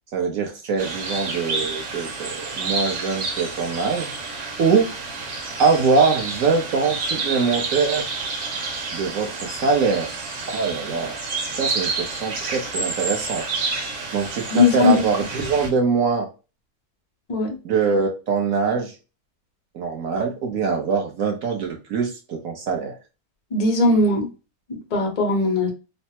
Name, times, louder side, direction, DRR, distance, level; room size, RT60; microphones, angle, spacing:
voice 1, 0.1-2.3 2.6-4.1 4.6-4.9 5.6-8.1 8.9-10.1 10.5-11.2 11.6-13.4 14.1-16.3 17.6-18.9 19.7-22.9, right 5 dB, 60° right, 1.0 m, -23 dB
sound 1, 0.8-15.7, right 4 dB, 90° right, 1.6 m, -29 dB
voice 2, 14.5-15.0 17.3-17.6 23.5-24.3 24.7-25.7, left 3 dB, 60° left, 0.4 m, -19 dB
3.2 x 2.1 x 2.7 m
omnidirectional pair, 1.9 m